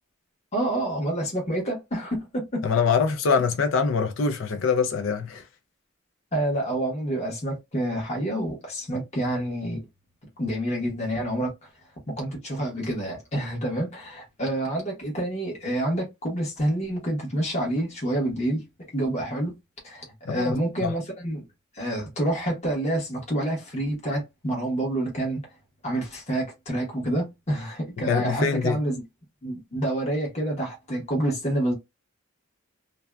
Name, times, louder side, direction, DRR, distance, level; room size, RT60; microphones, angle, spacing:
voice 1, 0.5-2.6 6.3-9.8 10.4-11.5 12.2-18.6 18.9-19.6 19.8-21.4 21.7-25.4 25.8-29.0 29.4-31.7, right 1 dB, 35° left, 1.1 m, -28 dB
voice 2, 2.6-5.4 20.3-20.9 28.1-28.8, left 5 dB, 65° left, 0.4 m, -24 dB
2.6 x 2.1 x 2.2 m
head